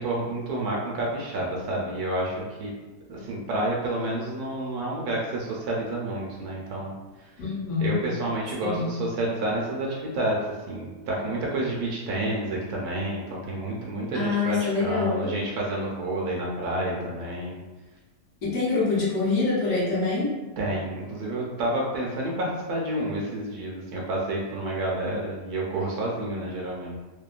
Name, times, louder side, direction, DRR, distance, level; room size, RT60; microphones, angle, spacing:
voice 1, 0.0-2.7 3.1-6.9 7.2-7.3 7.8-17.6 20.6-27.0, right 1 dB, 75° right, -2 dB, 1.0 m, -29 dB
voice 2, 7.4-8.0 8.6-8.9 14.1-15.4 18.4-20.3, left 3 dB, 65° left, -6 dB, 1.0 m, -25 dB
2.8 x 2.1 x 2.3 m, 1.2 s
omnidirectional pair, 1.8 m